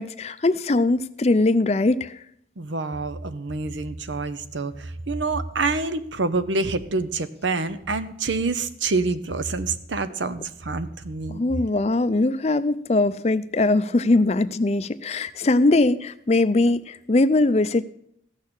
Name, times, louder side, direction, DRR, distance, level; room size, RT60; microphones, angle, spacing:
voice 1, 0.0-2.2 11.3-17.8, left 2 dB, 35° left, 14 dB, 0.5 m, -21 dB
voice 2, 2.6-11.4, right 3 dB, 90° right, 12 dB, 0.9 m, -27 dB
15.0 x 6.5 x 8.8 m, 0.72 s
head